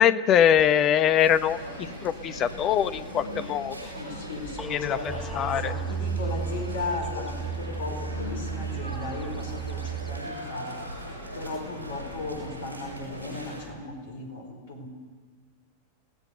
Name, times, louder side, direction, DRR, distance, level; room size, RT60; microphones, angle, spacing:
voice 1, 0.0-3.8 4.7-5.7, left 9 dB, 35° left, 13 dB, 0.9 m, -23 dB
Telephone, 0.6-7.0, left 3 dB, 10° left, 1.3 m, -46 dB
sound 1, 1.2-13.6, equal, 90° left, 7.6 m, -39 dB
voice 2, 4.0-10.9 11.3-14.9, left 3 dB, 55° left, 5 dB, 4.7 m, -36 dB
sound 2, 5.1-10.2, right 6 dB, 10° right, 2.0 m, -33 dB
28.5 x 17.5 x 6.7 m, 1.4 s
figure-of-eight pair, 90°, 0 cm